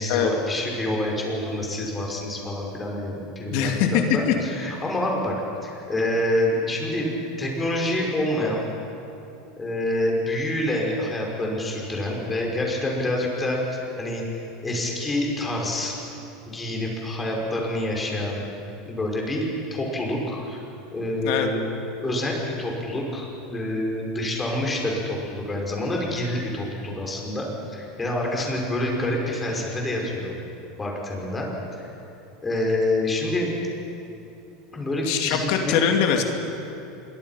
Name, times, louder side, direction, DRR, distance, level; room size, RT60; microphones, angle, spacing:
voice 1, 0.0-5.3 5.6-7.1 7.4-8.6 9.6-14.3 14.6-16.0 16.5-18.4 18.9-20.6 20.9-21.6 22.0-27.5 27.7-30.3 30.8-31.5 31.8-31.9 32.4-33.5 34.7-35.8, left 1 dB, 15° left, -1 dB, 5.4 m, -27 dB
voice 2, 3.5-4.4 21.2-21.5 35.0-36.2, left 8 dB, 65° left, 3 dB, 2.7 m, -22 dB
26.5 x 22.5 x 5.8 m, 2.8 s
supercardioid pair, 140°, 0 cm